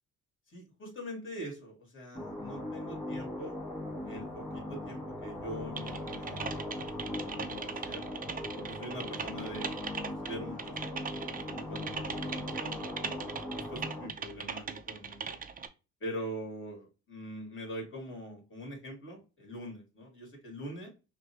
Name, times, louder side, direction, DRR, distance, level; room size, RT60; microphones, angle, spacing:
voice 1, 0.5-3.6 4.0-8.0 8.5-13.1 13.6-15.4 16.0-20.9, equal, 40° left, 0 dB, 2.3 m, -44 dB
sound 1, 2.1-14.1, left 1 dB, 10° left, 1.8 m, -39 dB
Typing, 5.8-15.7, right 6 dB, 30° right, 0.5 m, -40 dB
5.8 x 2.2 x 2.8 m, 0.30 s
cardioid pair, 90°, 30 cm